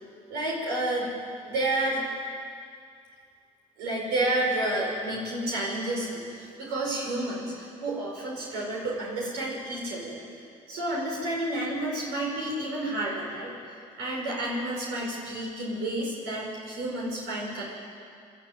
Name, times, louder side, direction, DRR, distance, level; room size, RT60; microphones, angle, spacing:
voice 1, 0.3-1.1 1.4-2.0 3.8-10.2 10.7-13.5 14.0-17.6, right 1 dB, 85° right, -3 dB, 5.3 m, -30 dB
22.5 x 12.5 x 9.3 m, 2.3 s
supercardioid pair, 60°, 17 cm